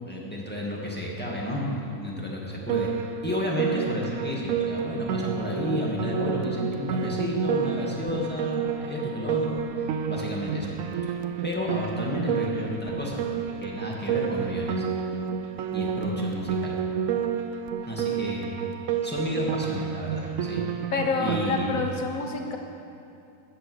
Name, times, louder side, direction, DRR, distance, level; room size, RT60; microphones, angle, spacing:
voice 1, 0.0-2.9 3.2-10.7 11.4-13.2 13.6-14.8 15.7-16.8 17.9-18.6 19.0-20.6 21.2-21.8, left 1 dB, 5° left, -4 dB, 2.0 m, -31 dB
Piano, 2.7-21.9, right 7 dB, 65° right, 1.0 m, -30 dB
voice 2, 20.9-22.6, left 4 dB, 60° left, 3 dB, 1.6 m, -28 dB
15.5 x 7.2 x 6.5 m, 2.6 s
omnidirectional pair, 1.6 m